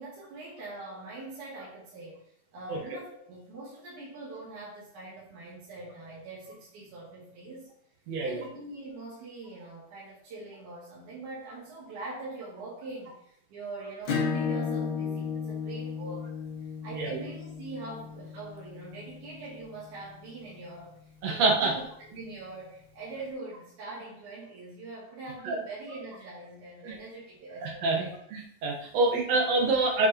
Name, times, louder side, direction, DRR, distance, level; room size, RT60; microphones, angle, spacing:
voice 1, 0.0-2.2 2.5-7.7 8.2-16.4 16.8-21.0 21.3-28.2 29.1-29.2, right 2 dB, 85° right, -8 dB, 3.8 m, -43 dB
Acoustic guitar / Strum, 14.1-19.3, left 5 dB, 55° left, 1.6 m, -33 dB
voice 2, 16.9-17.2 21.2-21.8 25.4-25.6 26.8-26.9 27.6-30.1, right 2 dB, 65° right, 0 dB, 2.5 m, -26 dB
8.0 x 7.4 x 3.0 m, 0.72 s
omnidirectional pair, 3.4 m